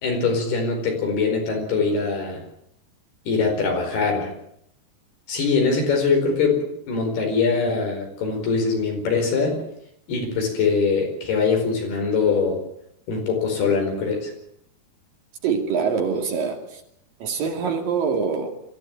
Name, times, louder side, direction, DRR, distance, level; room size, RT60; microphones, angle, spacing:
voice 1, 0.0-2.4 3.3-4.3 5.3-9.6 10.1-12.6 13.1-14.3, left 4 dB, 75° left, 6.8 m, -22 dB
voice 2, 15.4-16.8 17.2-18.5, right 6 dB, 60° right, 4.0 m, -24 dB
23.0 x 15.5 x 8.7 m
omnidirectional pair, 4.6 m